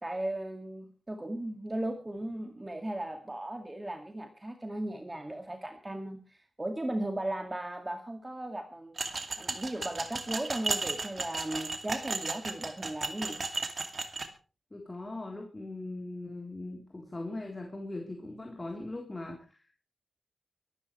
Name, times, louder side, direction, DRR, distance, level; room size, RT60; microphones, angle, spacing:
voice 1, 0.0-8.9 9.4-13.4, right 1 dB, 15° right, 4 dB, 2.2 m, -36 dB
sound 1, 9.0-14.3, right 3 dB, 45° right, 2.5 m, -35 dB
voice 2, 14.7-19.8, left 2 dB, 20° left, 1 dB, 3.7 m, -40 dB
24.5 x 13.0 x 3.3 m, 0.35 s
wide cardioid pair, 110°, 0 cm